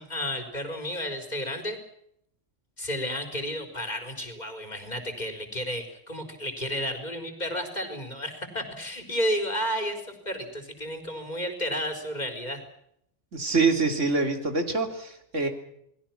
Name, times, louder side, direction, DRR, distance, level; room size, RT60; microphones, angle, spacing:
voice 1, 0.0-1.8 2.8-12.6, equal, 35° left, 6 dB, 4.5 m, -32 dB
voice 2, 13.3-15.5, right 4 dB, 80° right, 5 dB, 3.7 m, -25 dB
29.0 x 21.0 x 5.9 m, 0.73 s
omnidirectional pair, 1.3 m